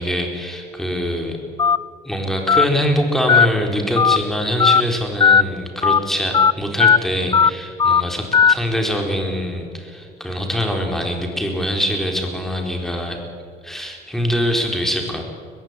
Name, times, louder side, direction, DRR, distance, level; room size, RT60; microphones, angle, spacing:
voice 1, 0.0-1.4 2.0-13.2 13.6-15.2, equal, ahead, 2 dB, 4.2 m, -23 dB
Telephone, 1.6-1.8 2.5-2.7 3.3-3.5 4.0-4.2 4.6-4.8 5.2-5.4 5.8-6.0 6.3-6.5 6.8-7.0 7.3-7.5 7.8-8.0 8.3-8.5, left 6 dB, 25° left, 0.4 m, -14 dB
20.5 x 16.0 x 9.4 m, 2.2 s
cardioid pair, 110°, 17 cm